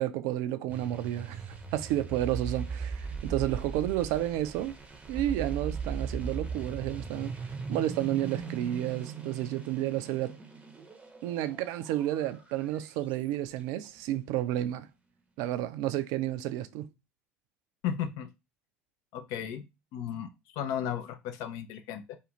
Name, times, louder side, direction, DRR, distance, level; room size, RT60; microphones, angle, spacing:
voice 1, 0.0-4.7 5.1-7.4 7.7-10.4 11.2-14.9 15.4-16.9, right 13 dB, 55° right, 0.4 m, -31 dB
sound 1, 0.7-13.1, right 5 dB, 15° right, 0.7 m, -39 dB
voice 2, 17.8-18.3 19.1-19.7 19.9-22.2, left 9 dB, 55° left, 0.5 m, -35 dB
2.5 x 2.4 x 2.9 m
figure-of-eight pair, 65°, 7 cm